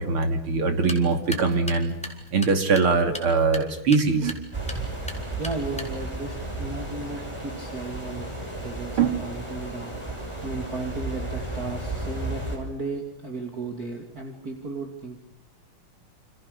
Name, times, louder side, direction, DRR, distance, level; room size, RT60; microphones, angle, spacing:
voice 1, 0.0-1.9 2.3-4.4 9.0-9.2, right 4 dB, 90° right, 6 dB, 3.6 m, -22 dB
sound 1, 0.7-6.2, left 1 dB, 5° left, 4.0 m, -40 dB
sound 2, 4.5-12.6, right 2 dB, 10° right, 6.0 m, -33 dB
voice 2, 5.1-15.2, right 3 dB, 45° right, 2 dB, 3.2 m, -35 dB
29.0 x 27.5 x 6.8 m, 0.79 s
omnidirectional pair, 2.3 m